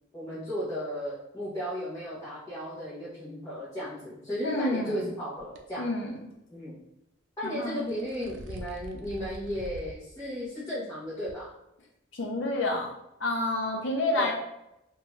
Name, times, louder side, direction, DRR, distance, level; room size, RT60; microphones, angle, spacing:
voice 1, 0.1-5.9 6.5-6.8 7.4-11.5 14.2-14.3, equal, 15° left, -11 dB, 0.7 m, -35 dB
voice 2, 4.4-5.1 5.8-6.1 7.4-8.0 12.1-12.9 13.2-14.3, left 2 dB, 65° left, 0 dB, 0.6 m, -29 dB
sound 1, 5.4-5.6 7.6-10.0 10.4-10.5 11.3-11.4, right 1 dB, 65° right, 0.4 m, -43 dB
2.6 x 2.2 x 3.0 m, 0.86 s
head